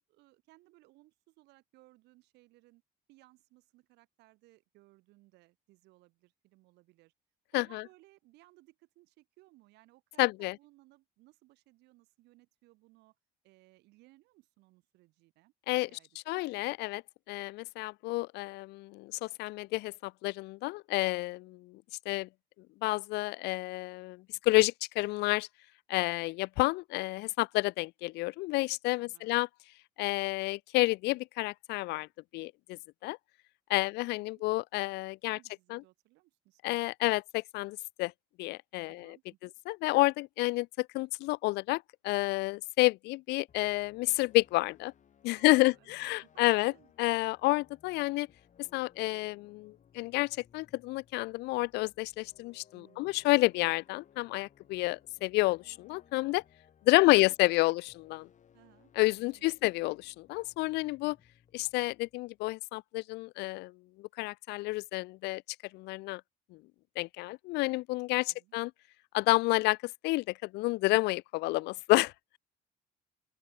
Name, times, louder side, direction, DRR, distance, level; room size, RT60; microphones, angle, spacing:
voice 1, 0.1-2.8 3.1-7.1 7.5-13.1 13.4-15.5 15.9-16.4 28.9-29.4 33.8-34.1 34.3-34.4 35.3-36.8 38.9-39.5 45.3-46.4 46.7-46.9 52.7-53.8 56.9-57.1 57.4-57.8 58.5-59.5 68.1-68.6, right 20 dB, 90° right, 4.6 m, -63 dB
voice 2, 10.2-10.6 15.7-15.9 16.3-17.0 17.3-22.3 22.8-25.5 25.9-29.5 30.0-32.1 32.3-33.2 33.7-35.4 35.7-35.8 36.6-38.1 38.4-39.2 39.7-44.9 45.2-46.7 47.0-48.3 48.6-56.4 56.9-57.8 58.1-58.3 59.0-61.2 61.5-63.7 64.0-65.4 65.7-66.2 67.0-68.7 69.1-69.8 70.0-72.4, left 21 dB, 85° left, 0.4 m, -30 dB
sound 1, 43.5-62.7, left 8 dB, 45° left, 5.7 m, -64 dB
open air
cardioid pair, 110°, 17 cm